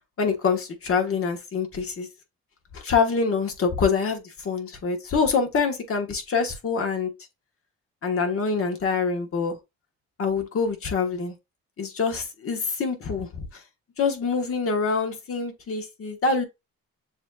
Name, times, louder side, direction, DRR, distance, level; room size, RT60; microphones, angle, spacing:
voice 1, 0.2-2.1 2.7-7.1 8.0-9.6 10.2-11.3 11.8-13.5 14.0-16.4, left 5 dB, 45° left, 1.2 m, -25 dB
7.0 x 2.6 x 2.3 m
cardioid pair, 90°, 30 cm